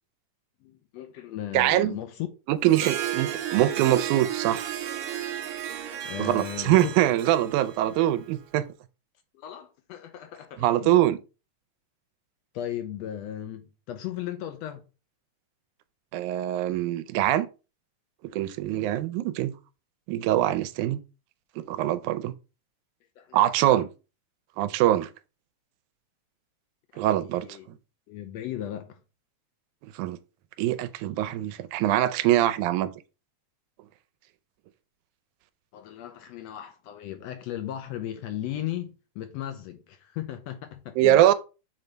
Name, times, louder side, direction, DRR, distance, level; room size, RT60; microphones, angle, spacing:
voice 1, 0.6-2.3 6.0-7.0 9.3-10.9 12.5-14.8 22.1-22.2 23.2-23.4 26.9-27.7 28.1-29.0 35.7-41.2, left 12 dB, 80° left, 1.6 m, -36 dB
voice 2, 1.5-2.0 2.5-4.7 6.2-8.7 10.6-11.2 16.1-17.5 18.3-19.5 20.1-21.0 21.6-22.3 23.3-23.9 24.6-25.1 27.0-27.8 29.9-30.2 30.6-32.9 41.0-41.3, right 13 dB, 85° right, 2.0 m, -23 dB
Harp, 2.6-8.4, right 10 dB, 65° right, 1.5 m, -34 dB
7.3 x 3.9 x 3.3 m
omnidirectional pair, 3.4 m